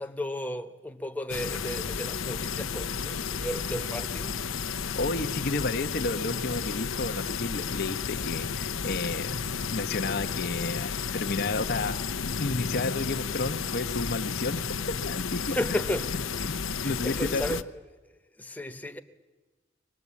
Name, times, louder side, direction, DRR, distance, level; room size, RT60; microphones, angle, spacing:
voice 1, 0.0-4.6 15.5-17.6 18.4-19.0, left 1 dB, 10° left, 1.0 m, -34 dB
sound 1, 1.3-17.6, left 6 dB, 85° left, 0.8 m, -32 dB
voice 2, 4.8-9.4 9.7-12.0 12.4-15.8 16.4-16.5 16.8-17.6, left 3 dB, 50° left, 0.9 m, -31 dB
24.0 x 19.5 x 8.4 m
head